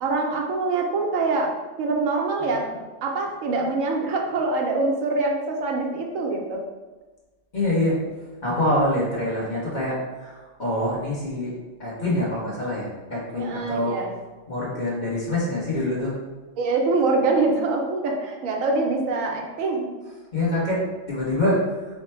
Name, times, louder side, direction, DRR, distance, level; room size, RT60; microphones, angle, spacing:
voice 1, 0.0-1.5 1.8-2.7 3.0-6.6 13.4-14.1 16.6-19.9, right 3 dB, 85° right, 1 dB, 1.0 m, -24 dB
voice 2, 7.5-8.0 8.4-11.5 11.8-14.0 14.5-16.1 20.3-20.8 21.1-21.6, left 1 dB, 40° left, -6 dB, 1.0 m, -25 dB
3.3 x 2.1 x 4.3 m, 1.2 s
omnidirectional pair, 1.4 m